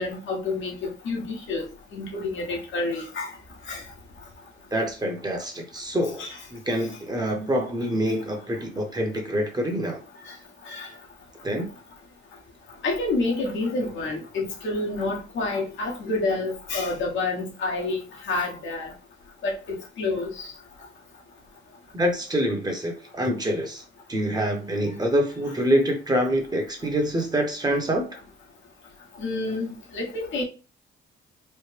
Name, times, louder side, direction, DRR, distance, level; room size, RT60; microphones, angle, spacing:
voice 1, 0.0-3.3 3.6-3.8 6.2-6.4 10.3-10.4 10.6-10.9 12.8-18.9 19.4-20.5 29.2-30.4, left 2 dB, 75° left, 1.2 m, -29 dB
voice 2, 4.7-6.2 6.5-10.0 11.4-11.7 21.9-23.8 24.1-28.2, equal, 20° right, 1.0 m, -26 dB
3.2 x 2.1 x 3.3 m
cardioid pair, 90°, 20 cm